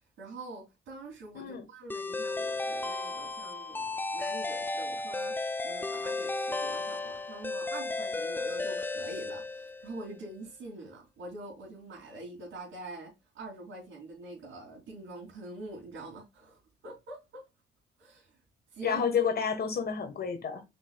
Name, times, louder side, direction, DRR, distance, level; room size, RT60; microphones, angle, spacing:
voice 1, 0.2-17.5 18.0-18.4 18.7-19.1, right 2 dB, 75° right, 2.8 m, -45 dB
sound 1, 1.9-10.0, left 3 dB, 10° left, 0.4 m, -34 dB
voice 2, 18.8-20.6, left 6 dB, 50° left, 1.5 m, -30 dB
5.5 x 3.6 x 2.3 m
cardioid pair, 90°, 20 cm